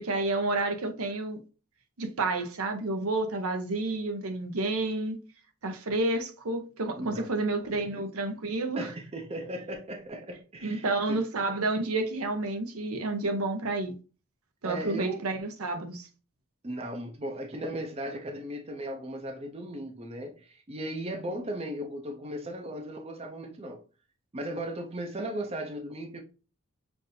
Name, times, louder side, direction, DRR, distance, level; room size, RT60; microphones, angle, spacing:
voice 1, 0.0-1.4 2.0-5.2 5.6-8.9 10.6-13.9 14.6-16.1, right 2 dB, 80° right, 0.8 m, -30 dB
voice 2, 7.0-7.3 7.7-8.0 8.8-11.2 14.6-15.2 16.6-23.8 24.3-26.2, right 1 dB, 25° right, 0.5 m, -37 dB
5.9 x 2.6 x 2.6 m
head